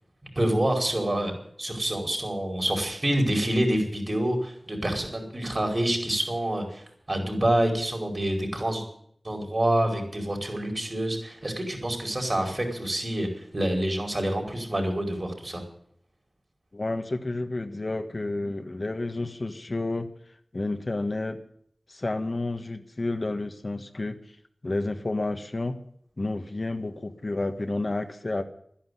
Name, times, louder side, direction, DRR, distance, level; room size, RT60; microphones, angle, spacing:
voice 1, 0.3-1.3 1.6-8.8 9.2-15.6, right 1 dB, 45° right, 3 dB, 5.0 m, -27 dB
voice 2, 16.7-20.1 20.5-21.4 21.9-24.2 24.6-25.8 26.2-28.4, left 2 dB, 50° left, 7 dB, 1.5 m, -30 dB
12.5 x 10.5 x 9.6 m, 0.66 s
wide cardioid pair, 50°, 0 cm